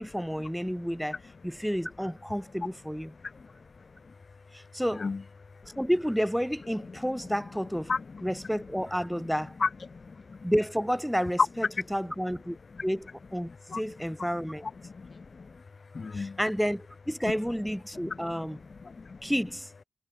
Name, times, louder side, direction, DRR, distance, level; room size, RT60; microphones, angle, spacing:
voice 1, 0.0-3.1 4.5-5.1 5.8-7.9 8.2-9.6 10.4-12.6 12.8-14.6 16.1-18.6 19.2-19.7, equal, ahead, 7.3 m, -30 dB
voice 2, 9.6-10.0 10.3-10.4 13.7-13.8 14.9-15.5 15.9-16.4 18.9-19.2, left 4 dB, 50° left, 2.4 m, -33 dB
cardioid pair, 75°, 0 cm